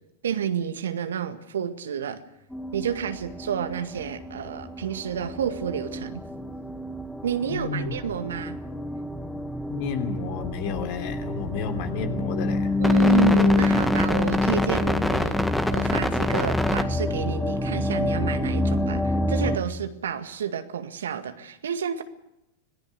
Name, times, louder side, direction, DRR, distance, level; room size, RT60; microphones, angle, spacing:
voice 1, 0.2-2.2 2.7-6.2 7.2-8.6 12.8-15.4 15.7-22.0, right 8 dB, 70° right, 9 dB, 1.9 m, -30 dB
sound 1, 2.5-19.6, left 2 dB, 5° left, 1.8 m, -26 dB
voice 2, 7.5-8.0 9.7-12.7, left 5 dB, 50° left, 6 dB, 3.3 m, -31 dB
sound 2, 10.2-16.0, left 3 dB, 85° left, 5.8 m, -41 dB
26.5 x 18.5 x 6.4 m, 0.85 s
figure-of-eight pair, 95°, 0 cm